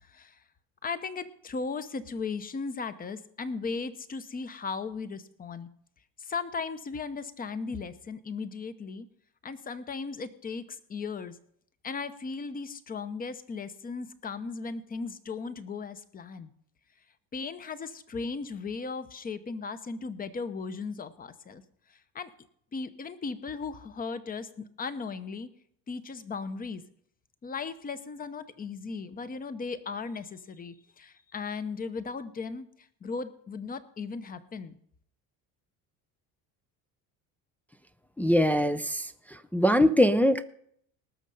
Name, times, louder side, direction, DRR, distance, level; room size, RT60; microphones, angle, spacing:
voice 1, 0.8-5.7 6.3-9.1 9.4-11.4 11.8-16.5 17.3-21.6 22.1-22.3 22.7-25.5 25.9-26.8 27.4-32.7 33.0-34.8, left 4 dB, 25° left, 13 dB, 0.9 m, -36 dB
voice 2, 38.2-39.1 39.5-40.4, equal, 5° left, 8 dB, 0.4 m, -22 dB
19.0 x 6.4 x 5.5 m, 0.67 s
cardioid pair, 120°, 34 cm